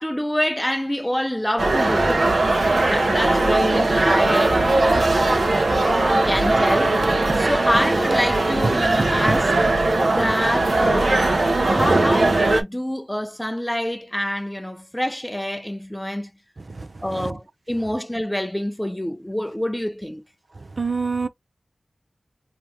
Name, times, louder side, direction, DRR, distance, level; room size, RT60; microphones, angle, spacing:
voice 1, 0.0-2.3 2.8-5.4 6.1-7.0 7.3-9.6 10.1-11.2 11.6-16.3 17.0-20.2, equal, 10° left, 0.4 m, -26 dB
sound 1, 1.6-12.6, right 2 dB, 70° right, 1.0 m, -19 dB
voice 2, 16.7-17.3 20.8-21.3, right 4 dB, 55° right, 0.6 m, -27 dB
3.5 x 2.9 x 2.9 m
wide cardioid pair, 65°, 0 cm